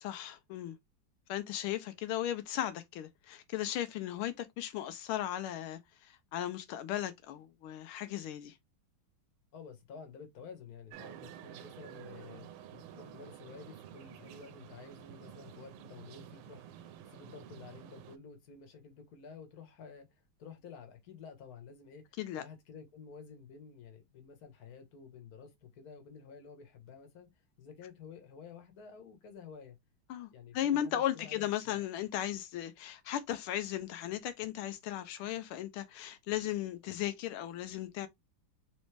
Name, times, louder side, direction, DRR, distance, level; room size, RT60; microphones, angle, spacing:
voice 1, 0.0-0.8 1.3-8.6 22.2-22.4 30.1-30.3 30.5-38.1, left 12 dB, 85° left, 1.5 m, -36 dB
voice 2, 9.5-29.8 30.3-31.8, left 6 dB, 50° left, 1.6 m, -51 dB
sound 1, 10.9-18.2, right 10 dB, 85° right, 1.5 m, -50 dB
4.0 x 3.1 x 3.2 m
omnidirectional pair, 2.3 m